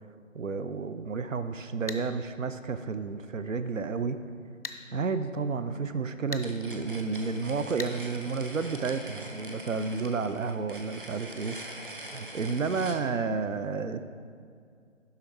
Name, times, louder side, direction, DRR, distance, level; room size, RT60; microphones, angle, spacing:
voice 1, 0.3-4.2 4.9-11.6 12.1-14.0, right 4 dB, 75° right, 11 dB, 0.5 m, -31 dB
sound 1, 1.9-2.0 4.6-4.8 6.3-6.5 7.8-8.0, left 3 dB, 45° left, 0.5 m, -37 dB
sound 2, 6.4-13.0, right 1 dB, 40° right, 0.8 m, -43 dB
11.5 x 3.8 x 4.5 m, 2.3 s
figure-of-eight pair, 160°, 40 cm